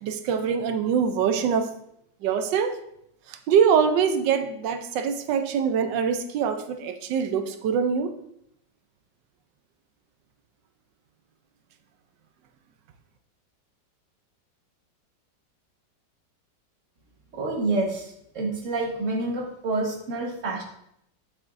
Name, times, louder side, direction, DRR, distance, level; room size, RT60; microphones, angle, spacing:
voice 1, 0.0-1.7 2.2-2.8 3.3-8.1, right 7 dB, 80° right, 8 dB, 1.3 m, -24 dB
voice 2, 17.3-20.6, right 2 dB, 45° right, 0 dB, 1.6 m, -28 dB
8.7 x 7.3 x 2.6 m, 0.75 s
omnidirectional pair, 1.9 m